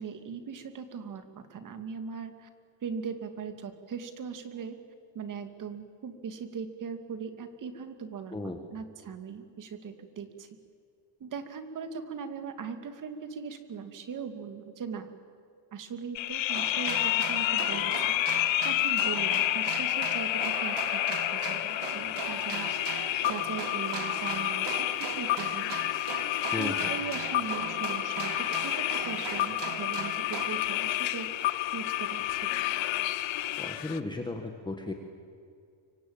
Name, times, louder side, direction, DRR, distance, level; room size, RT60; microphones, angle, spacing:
voice 1, 0.0-2.5 2.8-4.8 5.1-10.5 11.2-15.1 15.7-18.1 18.6-22.8 23.3-25.8 26.6-31.5 31.7-32.6, right 6 dB, 40° right, 8 dB, 2.4 m, -39 dB
sound 1, 16.1-34.0, left 15 dB, 65° left, 1.2 m, -30 dB
sound 2, 16.5-30.5, right 9 dB, 60° right, 2.1 m, -39 dB
voice 2, 33.6-34.9, left 2 dB, 10° left, 3 dB, 1.5 m, -35 dB
25.0 x 24.5 x 8.8 m, 2.4 s
cardioid pair, 160°, 48 cm